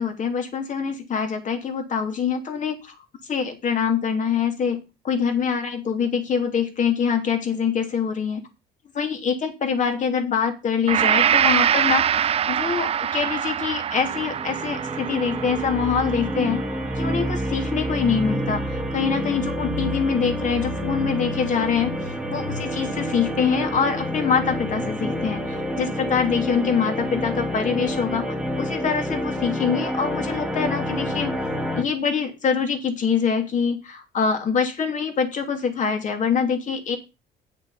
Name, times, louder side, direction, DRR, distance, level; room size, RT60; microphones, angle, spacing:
voice 1, 0.0-2.9 3.3-8.4 8.9-16.6 17.0-31.3 31.8-37.0, left 6 dB, 45° left, 5 dB, 2.9 m, -24 dB
Gong, 10.9-18.9, right 9 dB, 35° right, 0.4 m, -25 dB
sound 1, 13.9-31.8, equal, 5° right, 1.7 m, -28 dB
9.4 x 6.7 x 5.7 m, 0.27 s
cardioid pair, 110°, 17 cm